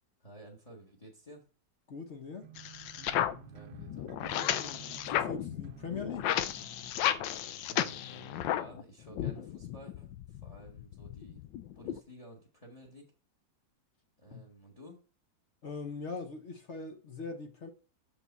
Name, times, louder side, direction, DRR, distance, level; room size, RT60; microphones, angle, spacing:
voice 1, 0.2-1.5 3.4-4.6 7.7-11.4 11.7-13.1 14.2-15.0, right 1 dB, 20° left, 1.5 m, -53 dB
voice 2, 1.9-2.5 5.1-6.3 14.3-14.4 15.6-17.7, left 4 dB, 50° left, 0.9 m, -41 dB
sound 1, 2.4-7.0, right 10 dB, 80° right, 1.3 m, -52 dB
sound 2, 2.6-8.8 9.1-12.0, left 11 dB, 85° left, 1.3 m, -34 dB
7.0 x 6.7 x 4.1 m
omnidirectional pair, 2.0 m